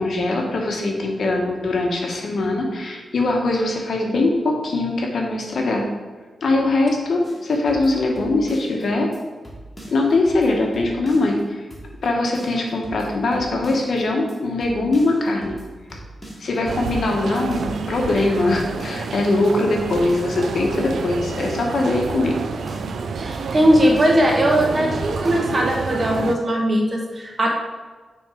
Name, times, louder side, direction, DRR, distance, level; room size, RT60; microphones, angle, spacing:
voice 1, 0.0-5.9 6.4-9.1 9.9-11.6 12.0-15.5 16.4-22.4, left 2 dB, 55° left, 1 dB, 1.0 m, -21 dB
sound 1, 7.2-8.8 9.1-9.2 9.4-11.4 11.7-12.1 12.3-14.0 14.3-14.4 14.6-16.6 16.9-17.2 17.5-19.2 19.4-19.5 19.8-21.7 22.0-22.4 22.7-24.3 24.6-24.7 24.9-25.5, right 1 dB, 10° left, 1.4 m, -40 dB
sound 2, 16.6-26.4, right 5 dB, 70° right, 0.3 m, -29 dB
voice 2, 23.2-27.5, equal, 35° right, -1 dB, 1.1 m, -19 dB
5.8 x 3.6 x 4.9 m, 1.4 s
wide cardioid pair, 165°, 0 cm